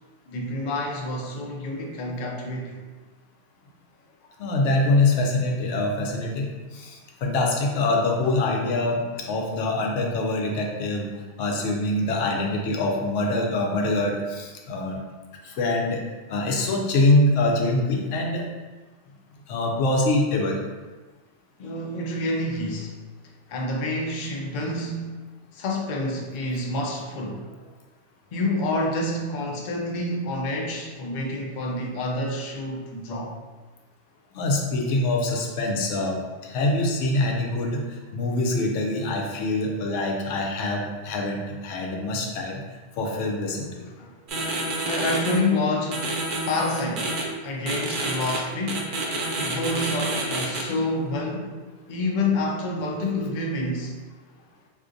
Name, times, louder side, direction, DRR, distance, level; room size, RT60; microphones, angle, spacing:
voice 1, 0.3-2.8 21.6-23.0 23.5-25.3 25.5-27.5 28.3-33.4 44.0-44.1 44.8-46.2 46.5-47.2 47.4-48.9 49.4-51.6 51.9-53.9, left 2 dB, 60° left, 0 dB, 0.5 m, -28 dB
voice 2, 4.4-9.0 9.3-11.1 11.4-15.0 15.4-16.0 16.3-18.4 19.5-20.6 34.3-42.6 43.0-43.7 52.8-53.2, left 2 dB, 85° left, 0 dB, 0.9 m, -24 dB
sound 1, 44.3-45.4 45.9-47.2 47.7-48.4 48.7-50.6, right 2 dB, 55° right, 0.7 m, -28 dB
3.6 x 2.5 x 2.5 m, 1.3 s
omnidirectional pair, 1.2 m